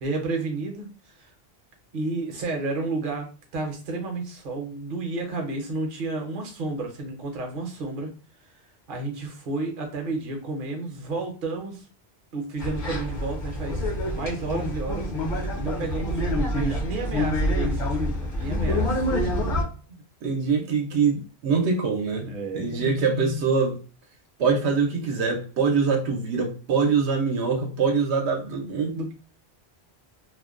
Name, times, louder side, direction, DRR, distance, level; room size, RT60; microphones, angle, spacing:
voice 1, 0.0-1.3 1.9-3.3 3.5-8.1 8.9-11.8 12.3-13.8 14.1-19.1 22.2-22.8 28.9-29.1, right 3 dB, 55° right, 0.8 m, -31 dB
sound 1, 12.6-19.6, left 1 dB, 50° left, 0.9 m, -26 dB
voice 2, 20.2-22.3 22.5-23.8 24.4-29.1, right 5 dB, 85° right, 0.9 m, -24 dB
2.4 x 2.1 x 2.4 m
omnidirectional pair, 1.1 m